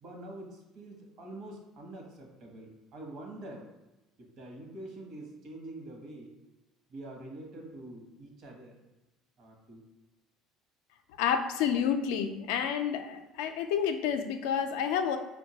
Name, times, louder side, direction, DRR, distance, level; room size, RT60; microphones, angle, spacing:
voice 1, 0.0-3.6 4.2-6.3 6.9-8.8 9.4-9.8, right 1 dB, 60° right, 1 dB, 0.8 m, -45 dB
voice 2, 11.2-15.2, left 8 dB, 85° left, 7 dB, 0.3 m, -29 dB
4.5 x 2.1 x 2.8 m, 1.0 s
supercardioid pair, 105°, 0 cm